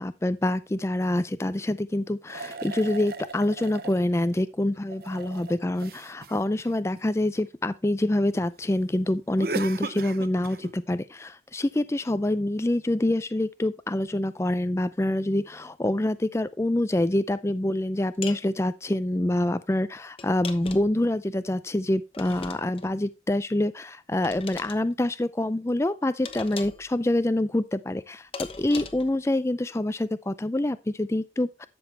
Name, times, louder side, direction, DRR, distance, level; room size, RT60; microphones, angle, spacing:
voice 1, 0.0-31.7, left 1 dB, 15° left, 0.4 m, -26 dB
sound 1, 2.3-4.0 4.7-7.4 9.4-10.7, right 3 dB, 55° right, 0.7 m, -37 dB
sound 2, 18.2-18.4 20.2-21.0 22.1-22.9 24.2-24.8 26.2-26.9 28.3-29.1, left 5 dB, 30° left, 1.0 m, -39 dB
12.0 x 7.1 x 3.3 m
head